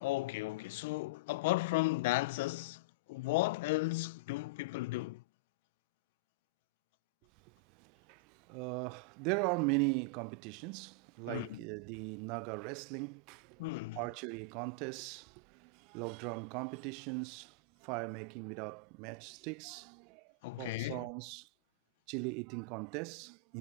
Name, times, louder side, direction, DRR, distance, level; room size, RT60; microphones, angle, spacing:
voice 1, 0.0-2.8 3.1-5.2 11.3-11.6 13.6-14.0 20.4-21.1, left 21 dB, 65° left, 1.0 m, -34 dB
voice 2, 7.8-13.7 14.0-20.3 20.6-21.5 22.1-23.6, right 31 dB, 60° right, 0.8 m, -39 dB
figure-of-eight pair, 70°, 0 cm